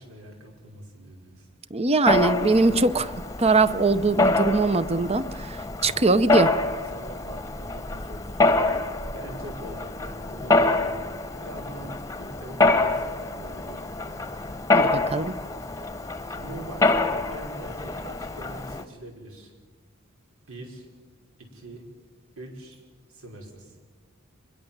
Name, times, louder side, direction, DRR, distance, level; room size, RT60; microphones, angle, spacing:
voice 1, 0.0-1.5 5.8-6.1 6.9-8.8 9.1-10.8 11.4-13.9 16.3-19.5 20.5-20.9 21.4-21.9 22.4-22.8 23.1-23.8, right 1 dB, 85° right, 2 dB, 5.4 m, -43 dB
voice 2, 1.7-3.1 3.4-6.5 14.7-15.3, right 3 dB, 30° right, 14 dB, 0.7 m, -22 dB
Mechanisms, 2.1-18.8, left 2 dB, 15° left, 1.0 m, -26 dB
24.0 x 21.5 x 7.3 m, 1.4 s
head